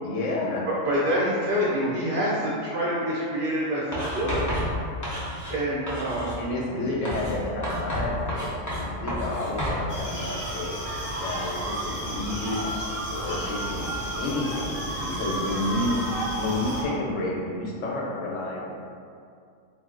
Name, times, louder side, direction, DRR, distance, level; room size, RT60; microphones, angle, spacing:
voice 1, 0.0-0.7 6.4-10.7 11.2-12.6 13.1-16.0 16.4-18.7, left 2 dB, 80° left, -3 dB, 0.9 m, -30 dB
voice 2, 0.9-4.5 5.5-6.3, equal, 55° right, -8 dB, 0.6 m, -26 dB
Writing, 3.9-5.6 5.9-6.4 7.0-9.8, equal, 30° left, 0.3 m, -30 dB
sound 1, 9.6-17.0, right 2 dB, 90° right, 1.0 m, -34 dB
sound 2, 9.9-16.8, left 1 dB, 50° left, 0.7 m, -35 dB
2.6 x 2.0 x 3.7 m, 2.4 s
omnidirectional pair, 1.3 m